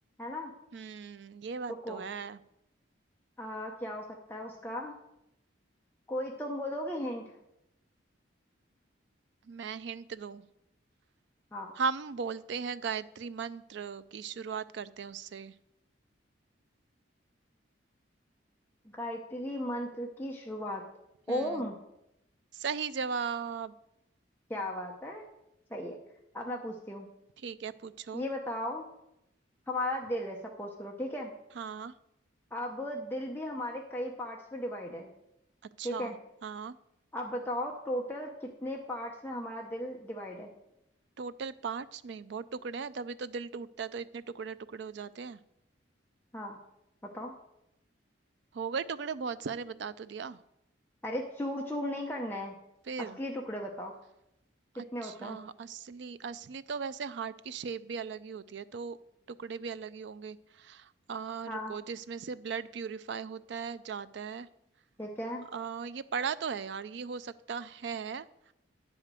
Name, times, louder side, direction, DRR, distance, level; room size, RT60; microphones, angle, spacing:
voice 1, 0.2-0.5 1.8-2.0 3.4-5.0 6.1-7.2 11.5-11.7 18.9-20.8 21.3-21.8 24.5-25.2 25.7-26.0 26.3-27.1 28.1-28.9 29.7-31.3 32.5-35.1 35.8-36.2 37.1-40.5 46.3-46.6 47.1-47.3 51.0-52.5 53.0-53.9 54.8-55.4 61.5-61.7 65.0-65.4, left 1 dB, 10° left, -1 dB, 0.8 m, -36 dB
voice 2, 0.7-2.4 9.5-10.4 11.8-15.5 21.3-21.7 22.5-23.7 27.4-28.2 31.5-31.9 35.8-36.1 36.4-36.8 41.2-45.4 48.5-50.4 52.9-53.2 54.7-59.0 59.3-64.5 65.5-68.3, right 6 dB, 65° right, 14 dB, 0.4 m, -38 dB
9.9 x 5.0 x 7.4 m, 0.84 s
head